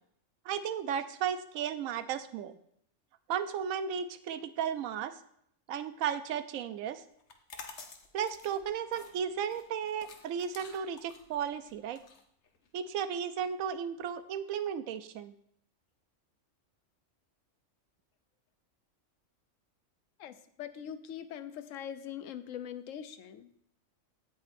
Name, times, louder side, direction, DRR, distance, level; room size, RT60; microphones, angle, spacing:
voice 1, 0.5-2.6 3.3-5.1 5.7-7.0 8.1-12.0 12.7-15.3, right 8 dB, 85° right, 12 dB, 1.0 m, -34 dB
sound 1, 7.2-12.9, left 5 dB, 60° left, 1.2 m, -51 dB
voice 2, 20.2-23.6, left 9 dB, 75° left, 11 dB, 1.0 m, -42 dB
16.0 x 5.7 x 2.6 m, 0.70 s
omnidirectional pair, 1.4 m